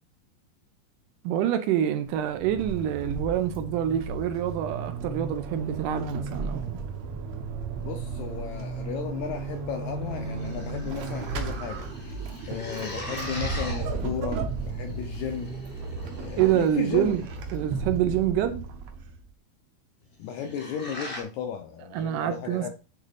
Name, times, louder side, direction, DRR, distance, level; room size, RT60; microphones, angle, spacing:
voice 1, 1.2-6.8 16.4-17.2 17.5-18.6 21.9-22.7, right 11 dB, 80° right, 2.1 m, -26 dB
Vehicle / Accelerating revving vroom / Squeak, 2.1-19.3, right 4 dB, 65° right, 1.8 m, -34 dB
voice 2, 7.8-12.2 12.4-15.5 16.2-17.1 20.2-22.7, left 8 dB, 80° left, 1.7 m, -35 dB
sound 1, 10.0-17.6 20.0-21.2, left 1 dB, 50° left, 0.6 m, -41 dB
8.9 x 3.7 x 4.0 m
omnidirectional pair, 4.0 m